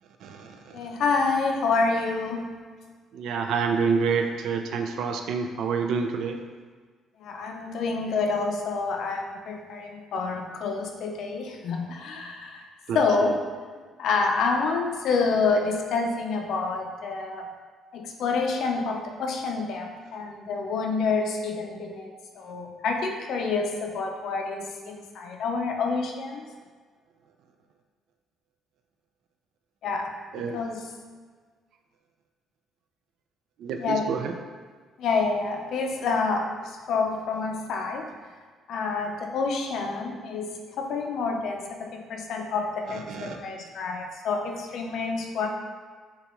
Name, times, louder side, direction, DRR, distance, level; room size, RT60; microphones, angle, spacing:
voice 1, 0.2-0.9 3.1-6.4 12.9-13.0 30.3-30.6 33.6-34.3 42.9-43.5, right 5 dB, 65° right, 5 dB, 0.4 m, -28 dB
voice 2, 0.7-2.5 7.2-12.6 12.9-13.4 14.0-17.5 17.9-26.5 29.8-30.1 30.4-30.8 33.8-34.2 35.0-38.1 38.7-45.5, left 4 dB, 60° left, 2 dB, 0.5 m, -28 dB
5.9 x 2.4 x 3.0 m, 1.5 s
cardioid pair, 165°, 0 cm